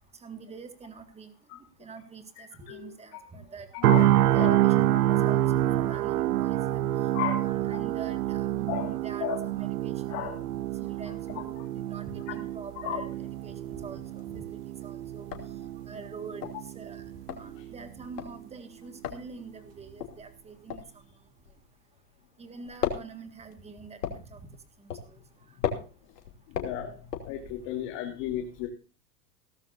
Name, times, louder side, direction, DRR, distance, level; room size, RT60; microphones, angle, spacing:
voice 1, 0.2-1.3 1.8-3.7 4.2-6.8 7.4-10.4 10.8-11.5 11.9-14.4 14.8-15.3 15.9-16.4 16.8-17.0 17.3-20.8 22.4-24.4 25.1-25.2, right 5 dB, 15° right, 8 dB, 1.8 m, -45 dB
voice 2, 2.4-3.2 3.7-4.6 7.1-7.8 8.7-8.9 9.2-9.4 10.1-10.4 12.3-12.4 12.8-13.0 17.6-17.7 26.5-27.0 27.2-28.7, left 9 dB, 50° left, 1 dB, 3.0 m, -34 dB
sound 1, 3.8-17.8 18.2-18.4, right 14 dB, 80° right, 0.7 m, -27 dB
sound 2, 13.9-14.5 14.8-14.9 15.1-22.2 22.5-27.8, left 8 dB, 90° left, 3.0 m, -36 dB
17.0 x 13.5 x 2.6 m, 0.35 s
hypercardioid pair, 130°, 47 cm